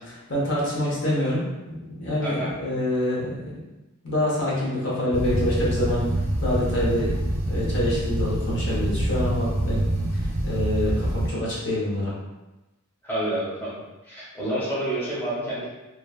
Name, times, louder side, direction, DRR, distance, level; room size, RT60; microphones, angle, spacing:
voice 1, 0.1-3.6 4.0-6.1 6.4-7.1 7.4-9.9 10.1-12.1, left 1 dB, 60° left, -6 dB, 0.8 m, -26 dB
sound 1, 5.1-11.3, right 1 dB, 75° right, 0.7 m, -26 dB
voice 2, 13.0-15.7, right 1 dB, 10° left, -8 dB, 0.9 m, -29 dB
3.0 x 2.3 x 2.3 m, 1.0 s
head